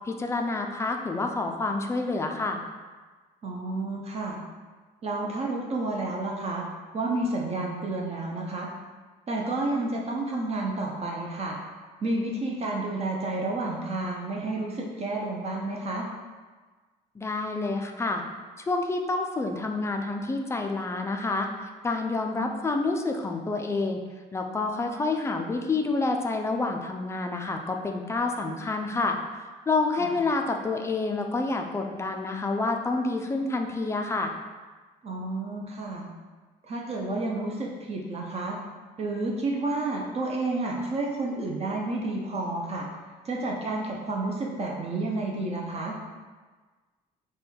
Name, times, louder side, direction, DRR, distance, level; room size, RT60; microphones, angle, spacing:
voice 1, 0.1-2.6 17.2-18.2 18.6-21.5 21.8-24.0 24.3-29.2 29.7-34.3, left 3 dB, 15° left, 3 dB, 0.3 m, -28 dB
voice 2, 3.4-4.4 5.0-6.6 6.9-8.7 9.3-11.6 12.0-16.1 30.0-30.1 35.0-36.1 36.6-38.6 39.0-42.9 43.2-46.0, right 2 dB, 40° right, -1 dB, 0.5 m, -30 dB
3.4 x 2.3 x 4.2 m, 1.4 s
cardioid pair, 110°, 17 cm